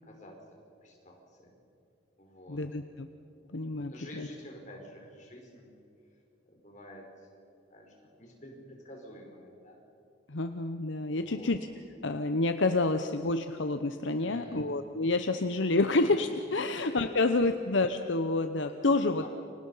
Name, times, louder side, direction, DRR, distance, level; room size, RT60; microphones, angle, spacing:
voice 1, 0.0-0.4 0.8-1.5 2.2-2.6 3.4-3.6 3.8-5.7 6.4-7.3 7.7-9.8 11.1-11.5 14.2-14.7 16.6-16.8 17.1-17.6 19.2-19.3, left 1 dB, 40° left, 0 dB, 5.4 m, -50 dB
voice 2, 2.5-3.1 3.5-4.3 10.3-11.6 12.0-19.3, left 2 dB, 70° left, 8 dB, 0.9 m, -28 dB
29.5 x 25.0 x 5.7 m, 2.6 s
head